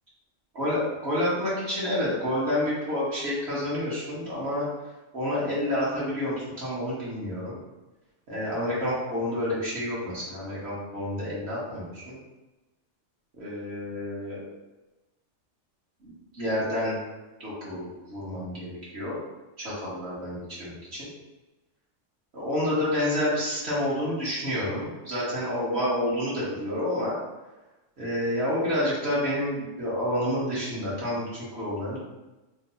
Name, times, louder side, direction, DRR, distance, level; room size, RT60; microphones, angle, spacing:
voice 1, 0.5-4.7 5.1-7.6 8.3-12.2 13.4-14.4 16.0-17.0 17.4-19.2 19.6-21.1 22.3-27.2 28.0-32.0, left 1 dB, 55° right, -8 dB, 1.4 m, -29 dB
3.3 x 2.2 x 3.8 m, 1.1 s
omnidirectional pair, 1.3 m